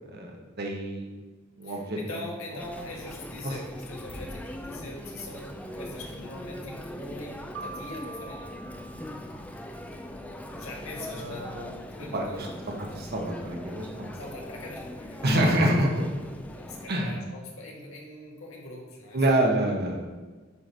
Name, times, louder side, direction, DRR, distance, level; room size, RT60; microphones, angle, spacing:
voice 1, 0.1-1.1 1.6-2.0 3.4-3.5 11.1-11.7 12.1-12.3 13.0-14.1 15.2-15.9 16.9-17.2 19.1-20.1, right 1 dB, 50° right, 0 dB, 1.1 m, -26 dB
voice 2, 1.6-8.5 10.6-11.4 11.9-12.6 14.1-15.5 16.5-19.2, left 2 dB, 85° left, -2 dB, 1.6 m, -42 dB
Chatter, 2.6-16.9, left 1 dB, 5° left, 0.4 m, -40 dB
Keyboard (musical), 7.5-10.1, right 3 dB, 80° right, 0.7 m, -44 dB
8.3 x 3.2 x 5.3 m, 1.3 s
head